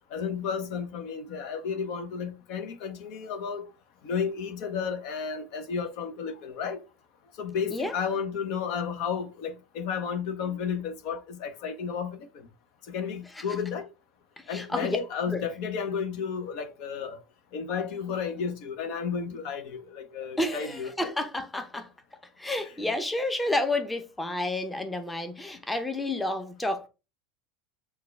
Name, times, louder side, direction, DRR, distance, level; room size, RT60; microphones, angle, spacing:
voice 1, 0.1-3.6 4.0-6.8 7.4-12.2 12.9-13.9 14.5-17.2 17.5-21.1, left 6 dB, 55° left, 0.7 m, -32 dB
voice 2, 14.4-15.0 15.3-15.4 20.4-21.9 22.4-26.9, left 1 dB, 10° left, 0.8 m, -30 dB
6.6 x 2.3 x 3.2 m
figure-of-eight pair, 80°, 0 cm